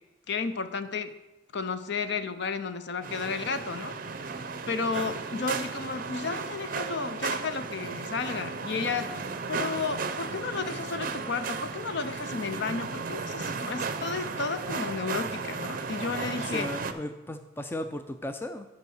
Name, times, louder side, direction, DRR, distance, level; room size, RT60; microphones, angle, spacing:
voice 1, 0.3-1.1 1.5-4.0 4.3-16.7, left 4 dB, 55° left, 10 dB, 0.5 m, -33 dB
sound 1, 3.0-16.9, right 4 dB, 45° right, 0.5 m, -35 dB
voice 2, 16.5-18.7, left 1 dB, 10° left, 7 dB, 0.3 m, -36 dB
9.4 x 5.3 x 6.4 m, 1.1 s
head